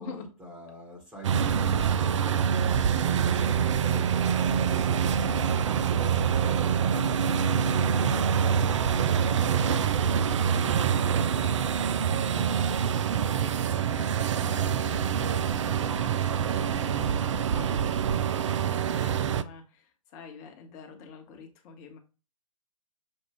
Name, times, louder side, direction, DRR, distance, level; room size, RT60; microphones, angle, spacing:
voice 1, 0.0-6.2, equal, 5° right, -1 dB, 1.2 m, -48 dB
sound 1, 1.2-19.4, right 7 dB, 60° right, 0.4 m, -25 dB
voice 2, 3.4-4.2 10.3-10.8 14.0-15.0 16.9-17.8 18.4-22.0, left 3 dB, 30° left, 4 dB, 1.0 m, -46 dB
6.5 x 2.4 x 3.3 m, 0.34 s
figure-of-eight pair, 125°, 18 cm